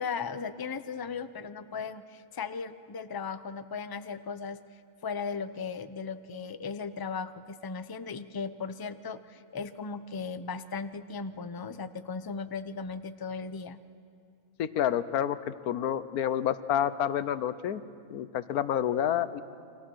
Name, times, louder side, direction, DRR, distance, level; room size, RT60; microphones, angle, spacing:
voice 1, 0.0-4.6 5.0-13.8, left 5 dB, 35° left, 12 dB, 0.3 m, -37 dB
voice 2, 14.6-17.8 18.1-19.4, left 10 dB, 90° left, 14 dB, 1.3 m, -29 dB
29.0 x 24.5 x 6.3 m, 2.4 s
omnidirectional pair, 1.5 m